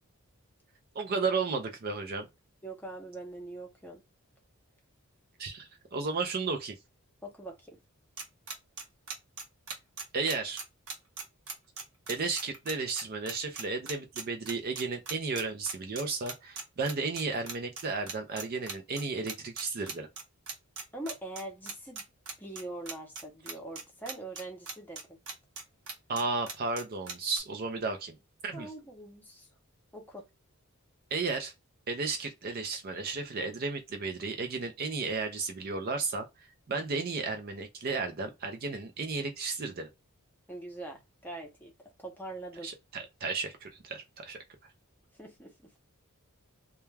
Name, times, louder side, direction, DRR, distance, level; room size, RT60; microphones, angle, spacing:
voice 1, 0.9-2.3 5.4-6.7 10.1-10.6 12.1-20.1 26.1-28.2 28.4-28.7 31.1-31.5 31.9-39.9 42.6-44.4, right 4 dB, 45° right, 0.4 m, -33 dB
voice 2, 2.6-4.0 7.2-7.8 20.9-22.0 22.4-25.2 28.5-29.5 29.9-30.3 40.5-42.7 45.2-45.7, right 2 dB, 10° left, 0.7 m, -43 dB
sound 1, 8.2-27.4, right 4 dB, 75° right, 0.9 m, -39 dB
2.2 x 2.2 x 3.1 m
head